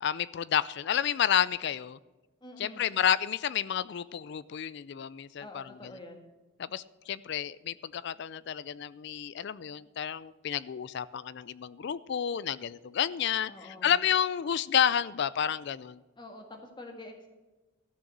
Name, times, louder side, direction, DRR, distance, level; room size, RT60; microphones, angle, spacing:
voice 1, 0.0-2.0 2.6-5.9 6.6-16.0, left 9 dB, 55° left, 19 dB, 0.4 m, -30 dB
voice 2, 2.4-2.9 5.4-6.2 13.5-13.9 16.2-17.3, left 1 dB, 25° left, 3 dB, 1.7 m, -46 dB
13.5 x 6.5 x 7.4 m, 1.1 s
head